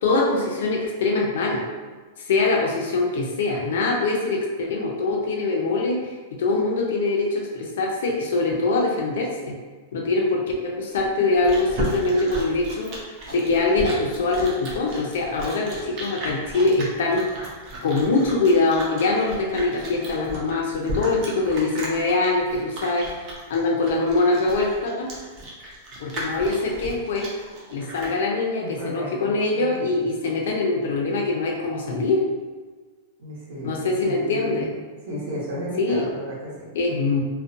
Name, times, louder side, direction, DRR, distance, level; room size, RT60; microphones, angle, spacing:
voice 1, 0.0-1.7 2.2-9.6 9.9-17.3 17.8-23.2 23.5-25.1 26.0-27.3 27.7-32.2 33.6-34.7 35.8-36.1 36.7-37.2, left 3 dB, 65° left, -1 dB, 0.4 m, -23 dB
Chewing mastication, 11.0-28.2, right 1 dB, 30° right, 0.5 m, -35 dB
voice 2, 28.6-29.3 29.5-29.8 33.2-34.8 35.1-36.6, equal, 70° right, -6 dB, 0.9 m, -34 dB
2.4 x 2.1 x 2.5 m, 1.4 s
supercardioid pair, 175°, 0 cm